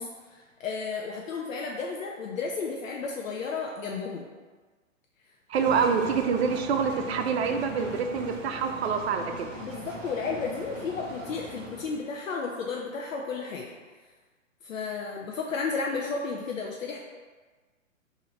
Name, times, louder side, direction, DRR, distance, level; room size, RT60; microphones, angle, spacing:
voice 1, 0.0-4.3 5.7-5.8 9.3-13.7 14.6-17.0, left 4 dB, 75° left, -1 dB, 0.7 m, -33 dB
sound 1, 5.5-12.0, right 1 dB, 30° right, 1.2 m, -40 dB
voice 2, 5.5-9.5, right 6 dB, 55° right, 5 dB, 0.6 m, -26 dB
3.8 x 2.8 x 4.5 m, 1.4 s
hypercardioid pair, 140°, 40 cm